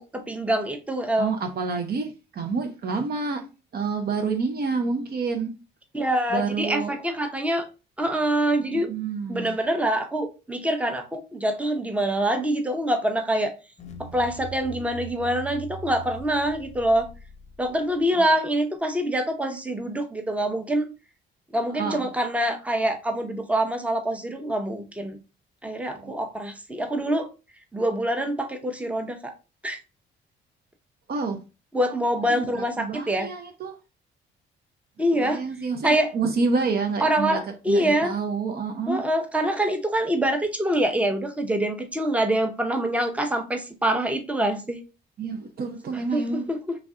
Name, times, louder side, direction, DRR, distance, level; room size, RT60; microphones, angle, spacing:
voice 1, 0.0-1.3 5.9-7.6 8.0-8.9 9.3-13.5 14.1-17.1 17.6-20.9 21.5-25.2 25.6-27.3 27.7-29.3 29.6-29.8 31.7-33.3 35.0-35.4 35.8-36.1 37.0-38.1 38.9-44.8 46.1-46.8, right 1 dB, 5° right, 0.7 m, -25 dB
voice 2, 1.2-3.4 3.7-5.5 6.3-7.0 8.7-9.5 18.1-18.3 21.7-22.1 25.9-26.1 31.1-31.4 32.3-33.7 35.1-37.4 37.7-39.1 45.2-46.5, right 4 dB, 50° right, 0.7 m, -28 dB
sound 1, 13.8-18.1, right 3 dB, 35° left, 0.7 m, -41 dB
3.3 x 2.5 x 3.5 m
cardioid pair, 90°, 20 cm